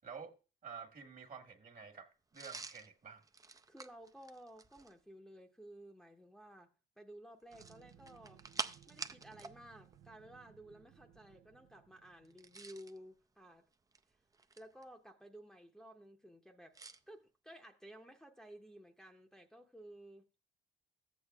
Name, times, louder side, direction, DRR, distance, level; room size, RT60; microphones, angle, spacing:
voice 1, 0.0-0.3 0.6-3.2, right 6 dB, 45° right, 1.4 m, -50 dB
sound 1, 2.3-5.0 7.4-9.6 9.9-10.0 12.3-13.0 13.7-14.8 16.7-17.0, right 3 dB, 15° right, 0.5 m, -47 dB
voice 2, 3.7-6.7 7.0-8.4 8.9-13.7 14.6-16.8 17.1-20.3, right 1 dB, ahead, 0.8 m, -55 dB
sound 2, 7.5-12.7, right 10 dB, 85° right, 0.6 m, -63 dB
13.0 x 8.3 x 2.3 m
cardioid pair, 90°, 20 cm